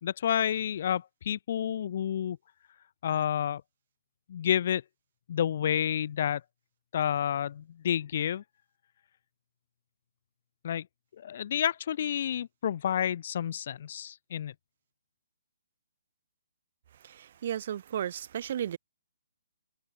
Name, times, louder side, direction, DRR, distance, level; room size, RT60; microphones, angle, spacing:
voice 1, 0.0-2.4 3.0-3.6 4.3-4.8 5.3-6.4 6.9-8.4 10.6-10.9 11.2-14.5, left 9 dB, 50° left, 0.4 m, -29 dB
voice 2, 17.0-18.8, right 10 dB, 45° right, 0.5 m, -34 dB
hypercardioid pair, 155°, 0 cm